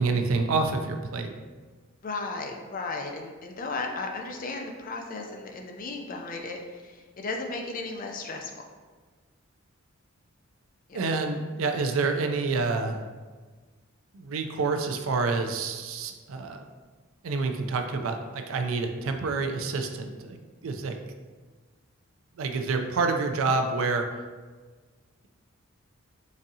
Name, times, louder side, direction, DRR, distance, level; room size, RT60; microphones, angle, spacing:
voice 1, 0.0-1.3 10.9-13.1 14.1-16.6 17.2-20.4 20.6-21.0 22.4-24.1, right 4 dB, 70° right, 5 dB, 0.4 m, -28 dB
voice 2, 2.0-8.7 10.9-11.2, left 3 dB, 40° left, 2 dB, 0.4 m, -35 dB
4.0 x 3.6 x 2.7 m, 1.4 s
head